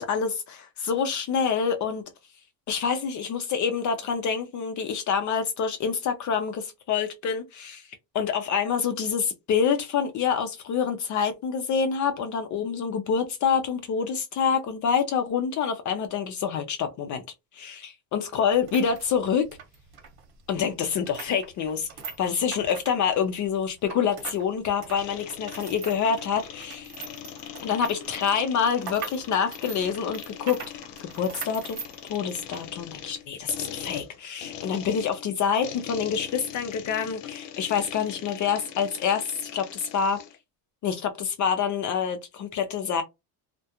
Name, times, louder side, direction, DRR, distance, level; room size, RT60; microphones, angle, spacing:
voice 1, 0.0-2.0 2.7-7.9 8.1-17.2 17.5-19.4 20.5-21.9 22.2-26.9 27.6-30.6 31.1-31.8 32.1-40.2 40.8-43.0, left 7 dB, 45° left, 0.5 m, -27 dB
sound 1, 18.5-24.5 24.7-32.7 33.0-33.1 33.8-34.0, right 6 dB, 60° right, 1.0 m, -41 dB
sound 2, 25.0-40.4, left 10 dB, 90° left, 0.6 m, -41 dB
2.3 x 2.1 x 2.8 m
cardioid pair, 125°, 41 cm